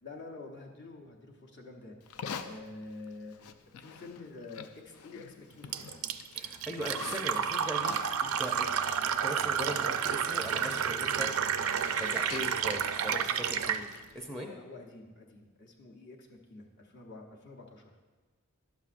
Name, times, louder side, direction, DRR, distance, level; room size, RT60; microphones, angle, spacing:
voice 1, 0.0-3.5 3.8-5.8 13.7-13.8 14.3-18.0, left 3 dB, 50° left, 0 dB, 0.8 m, -48 dB
Livestock farm animals working animals, 2.0-14.2, left 6 dB, 80° left, 0.4 m, -47 dB
Fill (with liquid), 5.7-13.8, right 8 dB, 70° right, 0.4 m, -31 dB
voice 2, 6.3-8.7 9.0-11.3 11.6-13.8 14.1-14.5, equal, 5° left, 1 dB, 0.5 m, -40 dB
11.5 x 7.0 x 2.5 m, 1.4 s
head